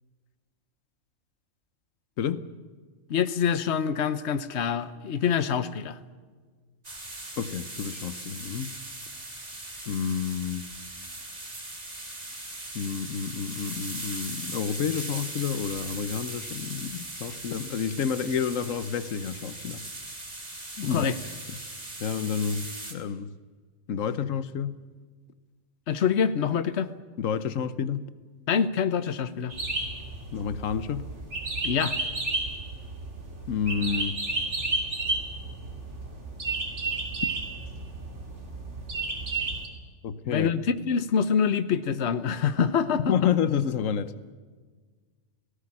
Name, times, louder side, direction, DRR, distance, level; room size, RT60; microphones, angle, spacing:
voice 1, 3.1-6.0 20.9-21.2 25.9-26.9 28.5-29.6 31.6-32.0 40.3-43.3, left 7 dB, 60° left, 13 dB, 1.2 m, -25 dB
sound 1, 6.8-22.9, right 2 dB, 30° right, 3.1 m, -39 dB
voice 2, 7.4-8.7 9.9-10.7 12.7-19.8 20.8-21.1 22.0-23.3 23.9-24.8 27.2-28.1 30.3-31.1 33.5-34.2 40.0-40.5 43.0-44.1, left 7 dB, 90° left, 14 dB, 1.3 m, -29 dB
sound 2, 29.5-39.7, right 2 dB, 65° right, 3.4 m, -32 dB
18.0 x 18.0 x 9.9 m, 1.5 s
omnidirectional pair, 1.3 m